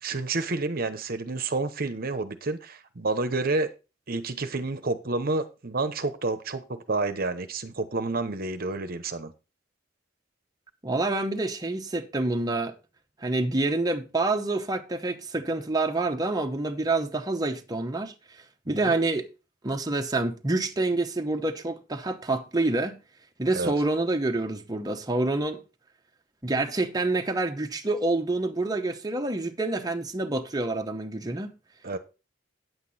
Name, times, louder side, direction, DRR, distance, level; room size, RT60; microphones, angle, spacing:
voice 1, 0.0-3.7 4.1-9.3 18.7-18.9 23.5-23.7 31.8-32.0, right 3 dB, 50° right, 0.9 m, -29 dB
voice 2, 10.8-12.7 13.2-19.3 19.6-23.0 23.4-25.6 26.4-31.5, right 2 dB, 20° right, 0.9 m, -27 dB
9.5 x 8.2 x 4.1 m
head